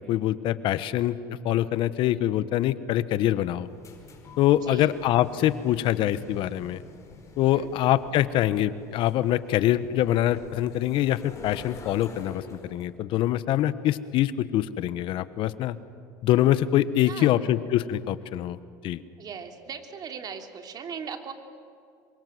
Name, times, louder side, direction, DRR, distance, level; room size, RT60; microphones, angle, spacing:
voice 1, 0.1-1.2 1.4-3.7 4.4-6.8 7.4-15.7 16.2-18.6 18.8-19.0, left 13 dB, 60° left, 14 dB, 1.2 m, -24 dB
sound 1, 3.6-12.9, left 3 dB, 30° left, 5.1 m, -47 dB
voice 2, 4.6-4.9 7.5-7.7 16.9-17.5 19.2-21.3, right 6 dB, 40° right, 5 dB, 3.0 m, -38 dB
26.5 x 24.0 x 8.0 m, 2.3 s
supercardioid pair, 95°, 10 cm